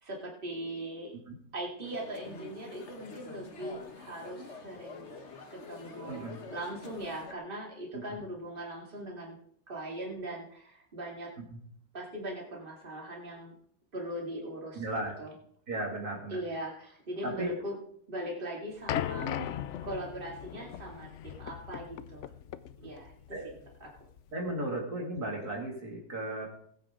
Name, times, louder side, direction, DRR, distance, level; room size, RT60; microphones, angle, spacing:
voice 1, 0.0-1.1 1.5-5.1 5.5-9.4 9.7-11.3 11.9-13.5 13.9-14.8 15.2-15.3 16.3-17.8 18.1-22.3 22.8-23.5 23.8-23.9, right 1 dB, 30° right, -1 dB, 2.9 m, -40 dB
sound 1, 1.8-7.3, left 4 dB, 45° left, 1.5 m, -47 dB
voice 2, 6.1-6.4 11.4-11.6 14.7-15.1 15.7-16.4 17.2-17.6 19.2-19.5 22.8-22.9 23.3-23.5 24.3-26.5, right 1 dB, 65° right, 0 dB, 3.1 m, -35 dB
sound 2, 18.9-24.3, left 10 dB, 65° left, 0.7 m, -38 dB
20.0 x 9.1 x 3.8 m, 0.66 s
omnidirectional pair, 1.8 m